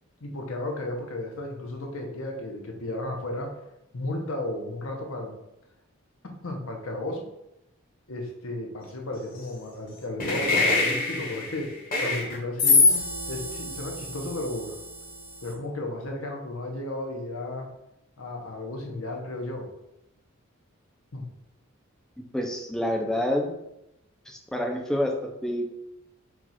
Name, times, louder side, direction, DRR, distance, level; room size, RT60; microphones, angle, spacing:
voice 1, 0.2-3.5 3.9-5.4 6.4-7.2 8.1-11.7 12.0-12.8 13.3-14.8 15.4-17.7 18.2-19.7 21.1-21.3, left 1 dB, 75° left, 1 dB, 0.9 m, -34 dB
sound 1, 10.2-15.5, left 3 dB, 40° left, 1.0 m, -25 dB
voice 2, 22.2-23.6 24.3-25.7, left 1 dB, 5° left, 2 dB, 0.5 m, -28 dB
4.6 x 2.4 x 4.2 m, 0.86 s
head